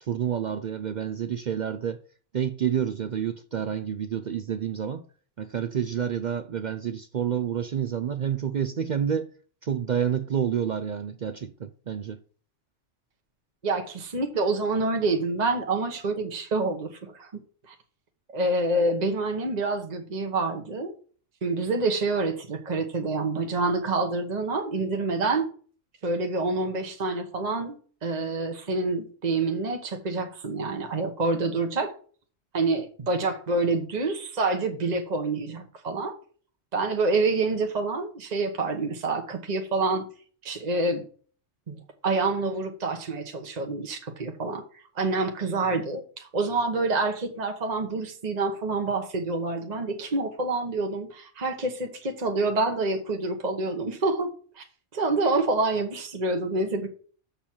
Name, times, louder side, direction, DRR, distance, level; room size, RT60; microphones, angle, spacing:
voice 1, 0.0-2.0 2.3-5.0 5.4-9.3 9.6-12.2, right 8 dB, 55° right, 0.5 m, -29 dB
voice 2, 13.6-17.3 17.7-17.8 18.3-20.9 21.4-25.5 26.0-27.8 28.0-31.9 32.5-36.1 36.7-40.1 40.4-41.0 41.7-44.6 44.9-54.3 54.6-54.7 54.9-56.9, right 3 dB, 35° right, 1.2 m, -27 dB
7.1 x 6.9 x 4.4 m
omnidirectional pair, 1.3 m